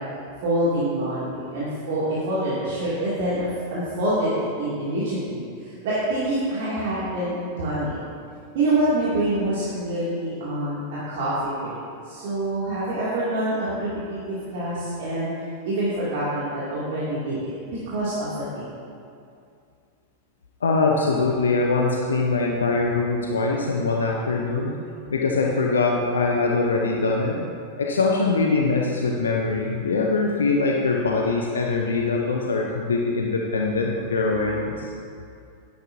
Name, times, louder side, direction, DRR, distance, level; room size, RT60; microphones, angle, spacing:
voice 1, 0.4-8.0 8.5-11.8 12.0-15.3 15.6-17.5 17.9-18.3 18.5-18.6, right 1 dB, 55° right, -9 dB, 2.6 m, -26 dB
voice 2, 20.6-24.8 25.1-27.5 27.8-34.9, left 3 dB, 70° left, 0 dB, 0.9 m, -23 dB
12.0 x 10.5 x 2.7 m, 2.4 s
figure-of-eight pair, 90°, 0 cm